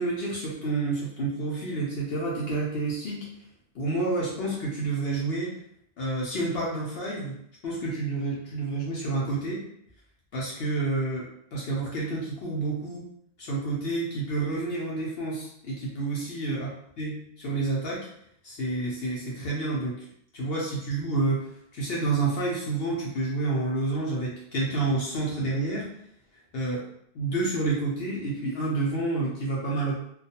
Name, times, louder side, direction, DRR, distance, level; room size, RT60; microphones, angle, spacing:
voice 1, 0.0-3.2 3.7-5.5 6.0-7.4 7.6-9.6 10.3-13.0 13.4-16.7 17.0-18.0 18.4-20.1 20.3-25.9 26.3-26.8 27.1-29.9, right 2 dB, 60° left, -4 dB, 0.7 m, -29 dB
2.3 x 2.2 x 2.8 m, 0.71 s
omnidirectional pair, 1.4 m